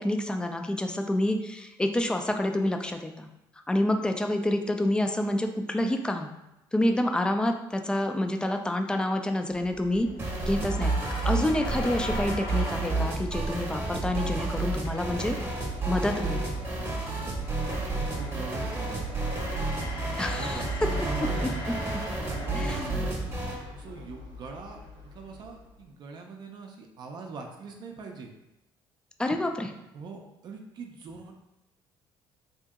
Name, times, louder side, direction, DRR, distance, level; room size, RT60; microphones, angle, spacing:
voice 1, 0.0-3.3 3.7-6.3 6.7-10.1 10.5-15.4 15.9-16.6 20.2-20.9 21.4-21.5 22.5-23.1 29.2-29.7, left 1 dB, 10° left, 5 dB, 0.4 m, -28 dB
sound 1, 9.5-25.8, left 2 dB, 65° left, 0.9 m, -40 dB
sound 2, 10.2-23.6, right 3 dB, 25° right, 0.9 m, -31 dB
voice 2, 18.0-19.2 20.3-21.6 22.2-23.1 23.7-28.3 29.9-31.3, right 4 dB, 50° right, 2 dB, 0.5 m, -42 dB
2.9 x 2.7 x 3.5 m, 0.92 s
cardioid pair, 95°, 9 cm